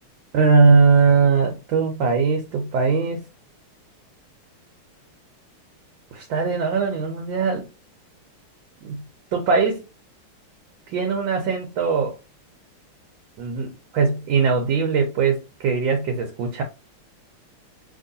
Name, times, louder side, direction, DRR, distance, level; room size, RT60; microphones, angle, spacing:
voice 1, 0.3-3.2 6.1-7.7 8.8-9.0 9.3-9.8 10.9-12.2 13.4-16.6, right 5 dB, 70° right, 1.3 m, -20 dB
2.9 x 2.9 x 2.6 m
omnidirectional pair, 2.4 m